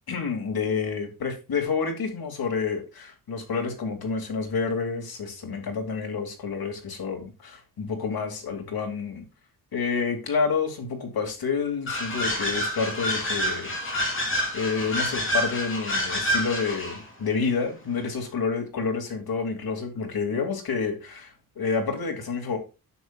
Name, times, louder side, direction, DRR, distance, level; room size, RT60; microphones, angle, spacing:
voice 1, 0.1-9.2 9.7-14.0 14.5-22.6, left 5 dB, 85° left, 2.5 m, -29 dB
sound 1, 11.9-17.0, equal, 35° left, 3.5 m, -28 dB
9.9 x 7.5 x 2.4 m
wide cardioid pair, 165°, 36 cm